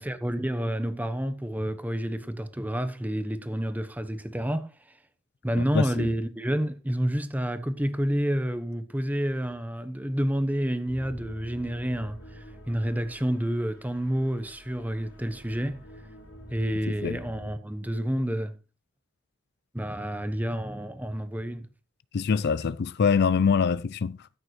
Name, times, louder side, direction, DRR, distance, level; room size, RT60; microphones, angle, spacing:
voice 1, 0.0-4.7 5.4-15.8 16.5-18.6 19.7-21.7, equal, 10° right, 1.0 m, -29 dB
voice 2, 5.7-6.1 17.0-17.2 22.1-24.2, left 6 dB, 55° left, 0.4 m, -24 dB
sound 1, 10.9-17.5, equal, 80° left, 3.9 m, -46 dB
13.5 x 8.9 x 3.2 m
head